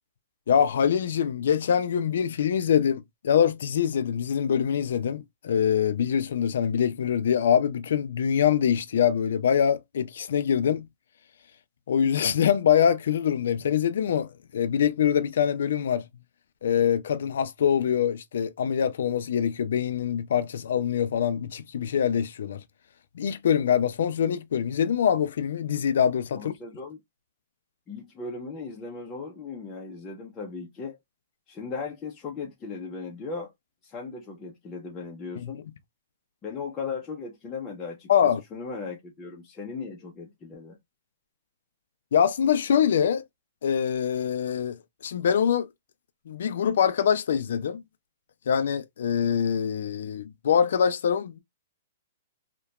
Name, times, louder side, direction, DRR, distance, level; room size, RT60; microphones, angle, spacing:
voice 1, 0.5-10.9 11.9-14.3 14.5-16.0 16.6-22.6 23.2-26.5 38.1-38.4 42.1-43.2 43.6-44.8 45.0-45.7 46.3-47.8 48.5-51.4, left 8 dB, 75° left, 0.3 m, -24 dB
voice 2, 26.3-27.0 27.9-31.0 31.5-33.5 33.8-35.6 36.4-40.8, left 4 dB, 20° left, 0.5 m, -37 dB
2.8 x 2.1 x 2.3 m
hypercardioid pair, 160°, 0 cm